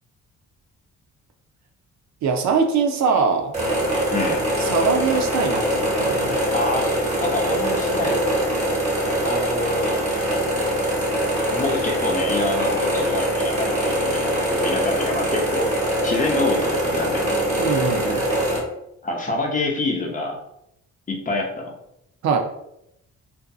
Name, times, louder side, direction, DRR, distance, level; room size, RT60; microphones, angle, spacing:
voice 1, 2.2-3.6 4.6-6.5 17.6-18.3 22.2-22.4, right 5 dB, 65° right, 4 dB, 0.5 m, -22 dB
sound 1, 3.5-18.6, equal, 25° right, 1.2 m, -23 dB
voice 2, 4.1-4.4 6.5-8.2 9.2-10.1 11.5-15.7 16.0-17.5 19.0-20.4 21.1-21.7, left 2 dB, 25° left, 0 dB, 0.6 m, -26 dB
2.6 x 2.5 x 2.3 m, 0.80 s
cardioid pair, 90°, 30 cm